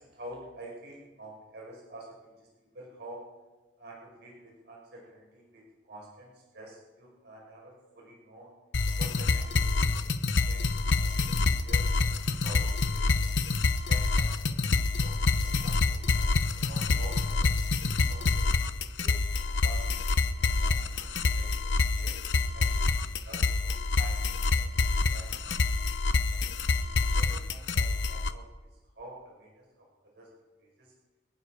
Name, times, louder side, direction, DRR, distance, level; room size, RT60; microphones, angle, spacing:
voice 1, 0.0-3.3 3.8-8.5 8.9-10.2 10.4-11.4 11.6-13.4 13.9-18.5 19.0-22.2 22.5-26.5 27.1-28.4 28.7-30.3 30.6-30.9, right 1 dB, 65° right, -3 dB, 5.4 m, -49 dB
sound 1, 8.7-28.3, left 3 dB, 75° left, 0.8 m, -27 dB
28.5 x 9.9 x 4.9 m, 1.2 s
head